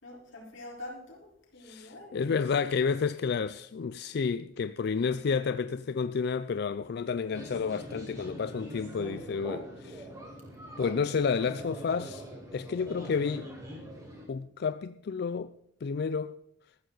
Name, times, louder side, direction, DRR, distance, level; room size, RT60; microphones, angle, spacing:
voice 1, 0.0-2.2 2.8-2.9, left 1 dB, 90° left, 4.1 m, -46 dB
voice 2, 1.6-10.1 10.8-12.3 12.5-13.5 14.3-15.5 15.8-16.4, left 5 dB, 60° left, 0.4 m, -30 dB
sound 1, 7.3-14.3, equal, 20° right, 3.9 m, -43 dB
14.0 x 13.5 x 3.9 m
head